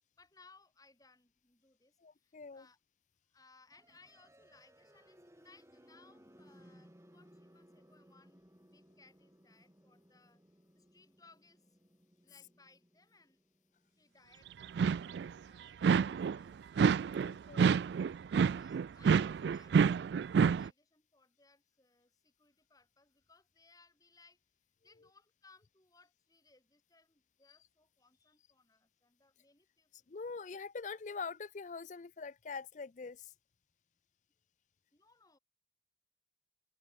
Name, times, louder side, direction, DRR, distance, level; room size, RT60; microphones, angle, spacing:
voice 1, 0.2-2.8 3.3-10.4 10.8-11.8 12.2-13.4 13.9-15.0 15.4-16.7 18.4-24.4 24.8-29.9 34.9-35.4, left 3 dB, 20° left, 5.2 m, -65 dB
voice 2, 2.0-2.7 17.2-17.8 30.1-33.3, left 4 dB, 45° left, 0.5 m, -44 dB
sound 1, 3.7-15.6, equal, 15° right, 4.0 m, -63 dB
sound 2, 14.6-15.3 15.8-16.4 16.8-20.7, right 6 dB, 70° right, 0.3 m, -28 dB
open air
head